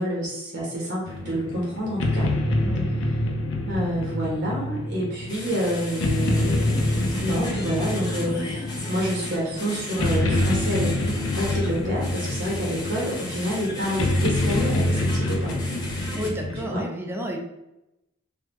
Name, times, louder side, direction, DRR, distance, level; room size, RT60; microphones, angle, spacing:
voice 1, 0.0-2.3 3.7-15.5 16.6-16.9, equal, 60° right, -3 dB, 0.9 m, -28 dB
sound 1, 1.1-16.7, left 1 dB, 70° left, 0.5 m, -26 dB
sound 2, 5.3-16.3, left 1 dB, 20° left, 0.7 m, -36 dB
voice 2, 16.1-17.4, equal, 10° right, 1 dB, 0.4 m, -31 dB
3.3 x 2.2 x 3.0 m, 0.90 s
head